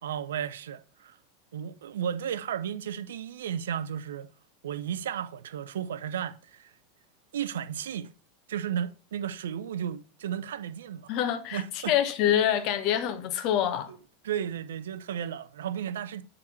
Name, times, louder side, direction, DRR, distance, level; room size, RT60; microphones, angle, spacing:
voice 1, 0.0-1.2 1.5-4.3 4.6-6.7 7.3-8.1 8.5-11.2 11.5-11.9 13.9-14.0 14.2-16.2, right 9 dB, 75° right, 0.5 m, -34 dB
voice 2, 11.1-13.9, left 10 dB, 55° left, 1.0 m, -26 dB
7.5 x 3.7 x 4.4 m
hypercardioid pair, 90°, 0 cm